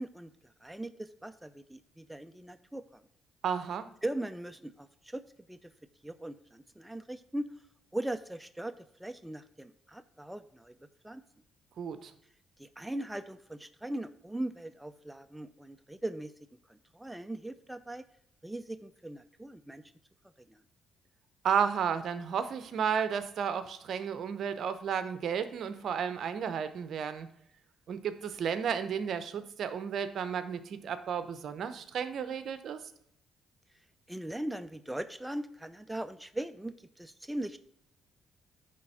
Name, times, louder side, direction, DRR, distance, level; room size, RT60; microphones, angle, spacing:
voice 1, 0.0-3.0 4.0-5.2 5.5-5.7 6.0-7.5 7.9-10.8 11.0-11.2 12.6-16.3 16.7-18.0 18.4-19.8 20.4-20.6 34.1-37.6, right 1 dB, 5° right, 10 dB, 0.4 m, -39 dB
voice 2, 3.4-3.9 11.8-12.1 21.4-27.3 27.9-32.8, right 7 dB, 65° right, 11 dB, 0.8 m, -33 dB
9.5 x 3.6 x 5.5 m, 0.74 s
cardioid pair, 90°, 0 cm